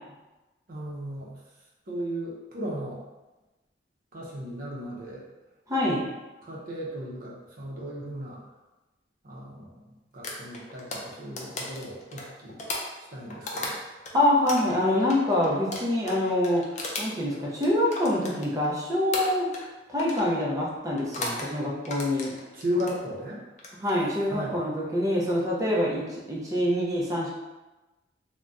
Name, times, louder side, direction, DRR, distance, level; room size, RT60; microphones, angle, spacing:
voice 1, 0.7-1.4 1.9-3.0 4.1-5.2 5.9-6.1 6.4-8.4 9.2-12.6 13.1-13.8 22.5-23.4 24.3-24.6, equal, 55° right, -4 dB, 0.7 m, -35 dB
voice 2, 5.7-6.1 14.1-16.7 17.0-19.5 19.9-22.3 23.7-27.3, left 1 dB, 20° right, -5 dB, 0.6 m, -25 dB
sound 1, 10.2-14.1 14.5-18.7 19.1-19.7 20.0-20.3 21.0-21.5 21.8-23.0 23.5-23.9, left 2 dB, 40° left, 0.5 m, -35 dB
2.6 x 2.2 x 3.5 m, 1.1 s
head